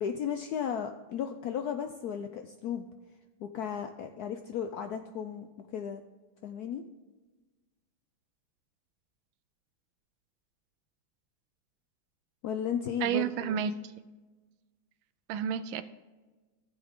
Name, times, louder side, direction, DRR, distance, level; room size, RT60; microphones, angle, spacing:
voice 1, 0.0-2.9 3.4-6.0 6.4-6.8 12.4-13.7, left 8 dB, 75° left, 7 dB, 0.9 m, -35 dB
voice 2, 13.0-13.8 15.3-15.8, right 8 dB, 80° right, 13 dB, 1.3 m, -30 dB
15.0 x 7.1 x 3.7 m, 1.2 s
omnidirectional pair, 2.2 m